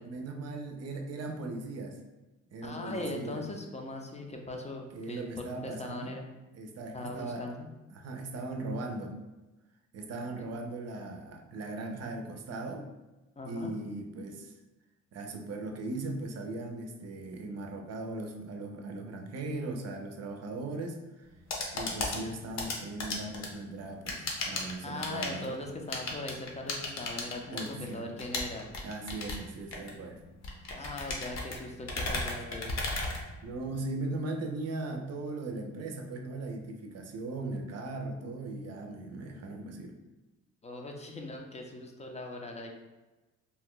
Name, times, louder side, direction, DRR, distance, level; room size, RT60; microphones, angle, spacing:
voice 1, 0.0-2.0 2.5-3.4 4.9-6.2 6.5-7.5 7.9-9.2 9.9-12.9 13.5-14.5 15.1-21.3 21.7-25.5 27.5-28.1 28.8-30.2 33.4-40.0, right 2 dB, 55° right, 4 dB, 0.6 m, -38 dB
voice 2, 2.6-6.3 6.9-7.7 13.4-13.7 24.8-28.7 30.8-32.7 40.6-42.7, left 2 dB, 20° left, 2 dB, 0.5 m, -40 dB
sound 1, 21.2-33.9, left 2 dB, 60° left, 0.8 m, -37 dB
2.7 x 2.2 x 3.7 m, 1.1 s
cardioid pair, 90°, 30 cm